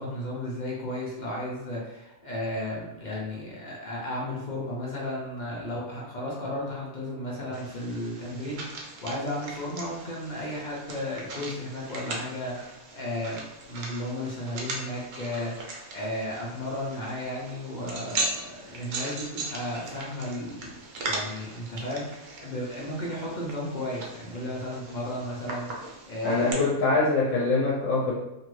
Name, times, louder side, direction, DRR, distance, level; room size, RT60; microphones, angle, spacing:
voice 1, 0.0-26.6, left 1 dB, 50° left, -4 dB, 0.6 m, -34 dB
sound 1, 7.5-26.5, right 2 dB, 70° right, 1.0 m, -39 dB
voice 2, 26.2-28.1, left 3 dB, 70° left, -5 dB, 1.0 m, -24 dB
2.7 x 2.5 x 3.0 m, 0.96 s
omnidirectional pair, 1.5 m